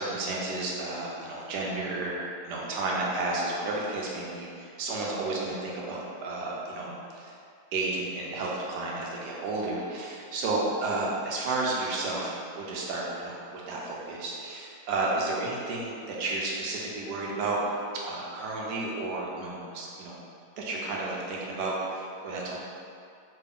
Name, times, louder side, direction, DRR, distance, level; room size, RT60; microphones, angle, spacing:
voice 1, 0.0-2.1 2.4-7.3 7.7-20.2 20.6-22.6, right 2 dB, 85° right, -3 dB, 1.2 m, -32 dB
3.3 x 2.3 x 3.5 m, 2.4 s
omnidirectional pair, 1.8 m